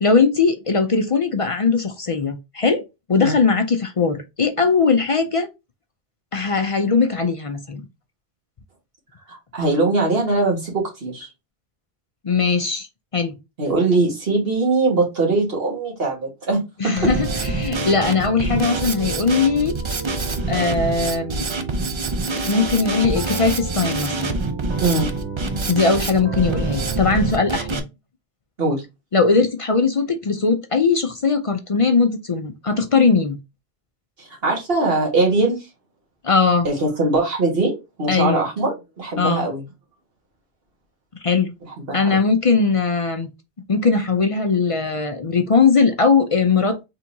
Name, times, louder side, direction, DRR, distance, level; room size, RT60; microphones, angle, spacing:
voice 1, 0.0-2.8 3.1-5.5 6.3-7.8 12.2-12.9 13.1-13.3 16.8-19.7 20.5-21.5 22.4-24.4 25.7-27.8 29.1-33.4 36.2-36.7 38.1-38.4 39.2-39.5 41.2-41.5 41.9-43.3 43.7-46.8, left 4 dB, 45° left, 0.5 m, -19 dB
voice 2, 9.3-11.3 13.6-16.6 24.8-25.1 28.6-28.8 34.2-35.6 36.6-39.6 41.9-42.2, right 3 dB, 65° right, 1.9 m, -21 dB
Drum kit, 17.0-27.8, right 3 dB, 40° right, 0.5 m, -25 dB
4.4 x 3.5 x 2.7 m
omnidirectional pair, 1.1 m